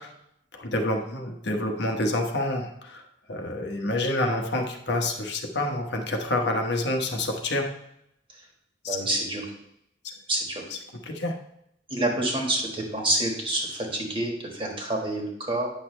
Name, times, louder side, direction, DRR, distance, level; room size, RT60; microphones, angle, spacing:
voice 1, 0.5-3.0 3.3-7.7 8.8-9.0 11.1-11.3, left 1 dB, 60° left, 3 dB, 1.0 m, -27 dB
voice 2, 8.9-9.4 10.3-10.6 11.9-15.7, right 1 dB, 25° right, 0 dB, 1.5 m, -27 dB
9.2 x 6.2 x 3.2 m, 0.77 s
head